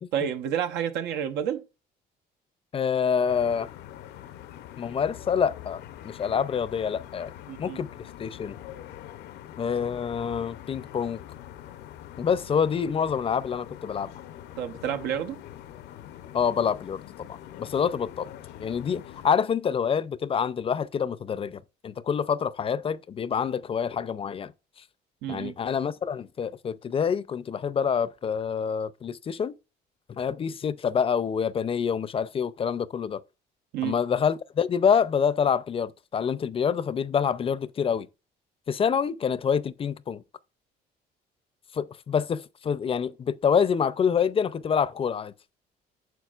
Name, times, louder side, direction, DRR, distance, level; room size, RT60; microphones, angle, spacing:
voice 1, 0.1-1.7 7.5-7.8 14.6-15.4 25.2-25.5 33.7-34.0, right 9 dB, 85° right, 0.9 m, -29 dB
voice 2, 2.7-3.7 4.8-7.3 7.6-8.6 9.6-11.2 12.2-14.1 16.3-18.3 18.6-24.5 25.3-29.5 30.1-33.2 33.8-38.1 38.7-40.2 41.7-45.3, left 7 dB, 35° left, 0.5 m, -27 dB
sound 1, 3.3-19.3, left 12 dB, 80° left, 0.7 m, -44 dB
9.2 x 6.3 x 2.4 m
cardioid pair, 110°, 17 cm